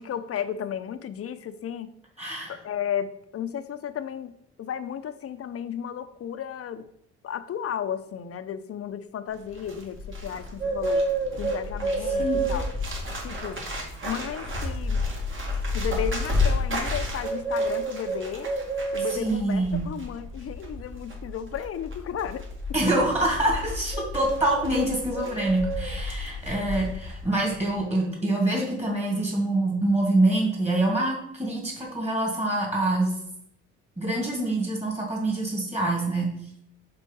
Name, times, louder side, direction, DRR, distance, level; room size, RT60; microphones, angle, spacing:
voice 1, 0.0-1.9 2.5-6.9 7.2-11.0 11.4-12.7 13.2-13.6 14.0-15.0 15.7-18.5 18.9-22.4 25.3-25.4, left 9 dB, 50° left, 12 dB, 0.6 m, -34 dB
voice 2, 2.2-2.5 12.2-12.4 19.1-19.9 22.7-33.1 34.0-36.3, right 2 dB, 20° right, -2 dB, 2.6 m, -25 dB
Bird, 9.3-27.2 27.4-27.7, equal, 40° right, 2.1 m, -30 dB
5.3 x 4.3 x 5.5 m, 0.76 s
cardioid pair, 90°, 30 cm